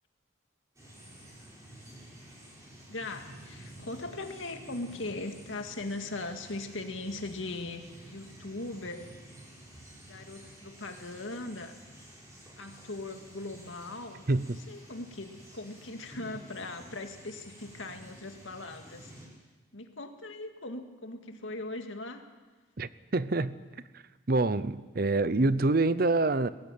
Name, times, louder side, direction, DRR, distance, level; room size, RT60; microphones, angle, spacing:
sound 1, 0.7-19.3, right 1 dB, 15° right, 6.1 m, -51 dB
voice 1, 2.9-9.1 10.0-11.8 12.6-14.2 14.7-19.1 19.7-22.3, left 2 dB, 85° left, 5 dB, 2.1 m, -39 dB
voice 2, 14.3-14.6 22.8-26.5, right 2 dB, 50° right, 16 dB, 0.7 m, -27 dB
22.0 x 16.0 x 9.2 m, 1.3 s
head